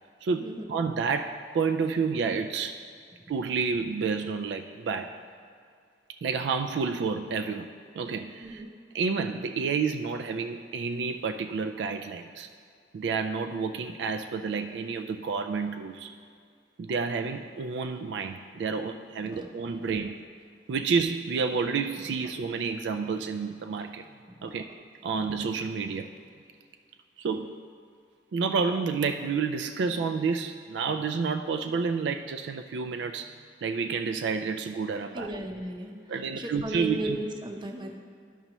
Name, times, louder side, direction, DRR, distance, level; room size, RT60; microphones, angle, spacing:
voice 1, 0.2-2.8 3.3-5.2 6.2-8.7 8.9-12.5 12.9-16.2 16.8-20.2 20.7-24.1 24.4-24.7 25.0-26.1 27.2-27.6 28.3-33.4 33.6-35.4 36.1-37.2, right 5 dB, 75° right, 7 dB, 0.3 m, -30 dB
voice 2, 35.1-35.9 36.3-38.0, right 1 dB, 25° right, 2 dB, 0.7 m, -35 dB
12.0 x 5.4 x 3.0 m, 2.2 s
head